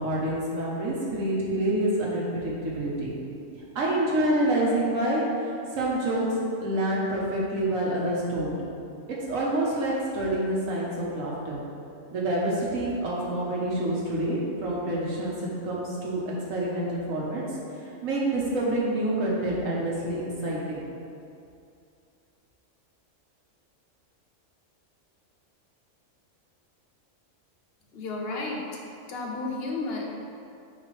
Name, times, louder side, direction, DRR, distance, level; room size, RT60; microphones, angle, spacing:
voice 1, 0.0-3.1 3.7-6.2 6.6-8.5 9.3-11.6 12.1-15.3 15.6-16.2 16.5-17.4 17.9-20.8, right 1 dB, 85° right, -4 dB, 1.6 m, -27 dB
voice 2, 27.9-28.8 29.1-30.1, left 3 dB, 55° left, -1 dB, 1.0 m, -32 dB
8.8 x 3.6 x 3.3 m, 2.5 s
omnidirectional pair, 1.3 m